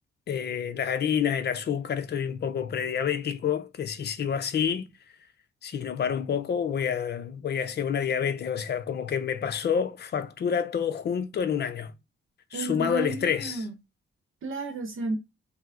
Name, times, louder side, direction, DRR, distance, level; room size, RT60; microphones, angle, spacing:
voice 1, 0.3-4.9 5.6-11.9 12.5-13.7, left 7 dB, 50° left, 0.6 m, -28 dB
voice 2, 12.5-13.7 14.4-15.2, right 3 dB, 75° right, 0.9 m, -32 dB
5.6 x 2.1 x 3.6 m
wide cardioid pair, 130°, 21 cm